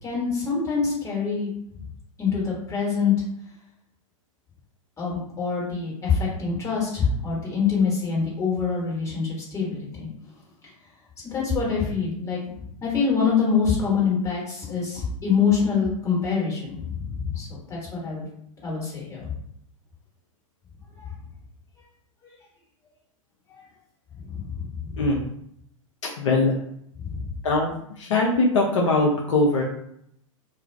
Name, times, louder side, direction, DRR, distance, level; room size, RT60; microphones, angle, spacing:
voice 1, 0.0-1.5 2.2-3.1 5.0-10.1 11.2-12.4 12.8-18.2 18.6-19.4 21.0-21.1 22.2-22.3 23.5-23.6 24.2-25.0 27.0-27.2, left 5 dB, 15° left, -4 dB, 1.4 m, -25 dB
voice 2, 26.0-26.6 27.4-27.7 28.0-29.6, left 2 dB, 60° left, -1 dB, 0.6 m, -21 dB
2.3 x 2.3 x 3.2 m, 0.72 s
figure-of-eight pair, 105°, 17 cm